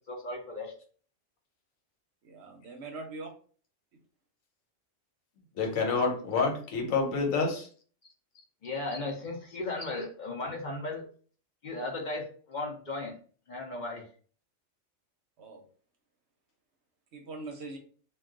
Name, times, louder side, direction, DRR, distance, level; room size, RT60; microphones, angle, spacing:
voice 1, 0.1-0.7 8.6-11.0 11.6-13.1 13.5-14.0, left 2 dB, 50° left, 0 dB, 0.5 m, -36 dB
voice 2, 2.2-3.3 15.4-15.6 17.1-17.8, right 3 dB, 65° right, 4 dB, 0.8 m, -42 dB
voice 3, 5.6-7.7, left 4 dB, 85° left, 2 dB, 1.2 m, -28 dB
2.3 x 2.2 x 3.7 m, 0.43 s
omnidirectional pair, 1.4 m